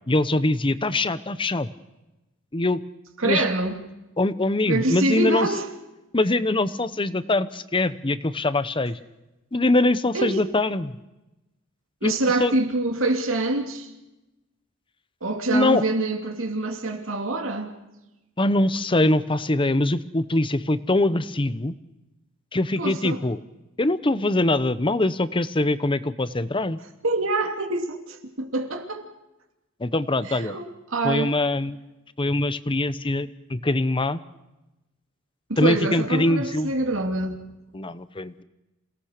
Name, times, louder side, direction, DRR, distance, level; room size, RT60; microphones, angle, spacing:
voice 1, 0.1-1.7 2.5-2.8 3.2-3.4 4.2-5.5 6.1-9.0 9.5-10.9 12.0-12.1 12.4-12.5 15.5-15.8 18.4-21.7 22.5-23.4 23.8-26.8 29.8-30.6 31.0-31.8 32.2-34.2 35.6-36.7 37.7-38.4, left 2 dB, 25° left, 0.9 m, -23 dB
voice 2, 3.2-3.8 4.7-5.7 10.1-10.5 12.0-13.9 15.2-17.7 22.8-23.2 27.0-29.0 30.3-31.4 35.5-37.4, right 2 dB, 75° right, 2.8 m, -25 dB
28.0 x 18.0 x 6.7 m
head